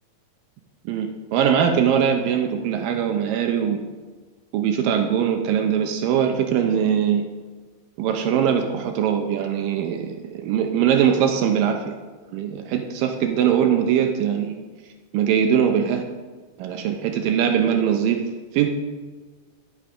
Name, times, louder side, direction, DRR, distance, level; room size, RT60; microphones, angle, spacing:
voice 1, 0.9-3.8 4.5-7.3 8.0-12.0 12.3-14.6 15.1-16.1 16.6-18.7, right 8 dB, 75° right, 5 dB, 2.3 m, -21 dB
10.5 x 7.4 x 5.6 m, 1.4 s
omnidirectional pair, 4.2 m